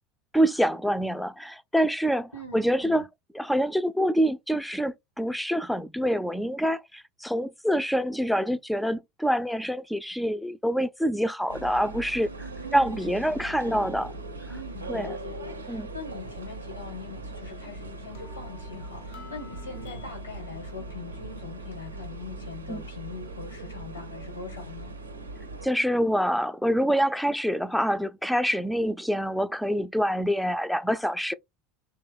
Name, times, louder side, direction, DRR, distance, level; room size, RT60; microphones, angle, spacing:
voice 1, 0.3-3.1 3.3-12.5 12.7-14.1 14.9-15.2 15.7-15.9 22.7-22.8 25.6-31.3, equal, ahead, 0.4 m, -26 dB
voice 2, 2.3-3.0 12.6-14.2 14.5-24.9, left 4 dB, 85° left, 1.1 m, -42 dB
sound 1, 11.5-25.7, right 2 dB, 85° right, 0.5 m, -40 dB
sound 2, 17.5-21.8, left 1 dB, 65° left, 0.8 m, -50 dB
3.0 x 2.3 x 3.3 m
figure-of-eight pair, 75°, 0 cm